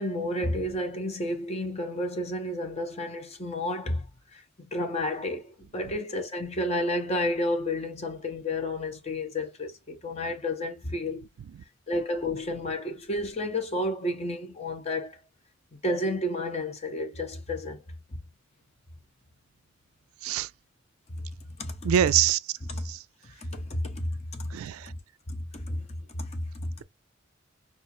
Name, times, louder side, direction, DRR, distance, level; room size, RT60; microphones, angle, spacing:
voice 1, 0.0-4.1 4.3-11.3 11.9-15.2 15.7-17.8 21.2-21.3 21.6-21.9 22.6-22.9 23.4-24.5 25.3-26.7, left 1 dB, 30° left, 0.7 m, -31 dB
voice 2, 21.8-22.4 22.9-23.0 24.5-24.9, right 11 dB, 85° right, 0.3 m, -24 dB
4.3 x 2.5 x 2.5 m
head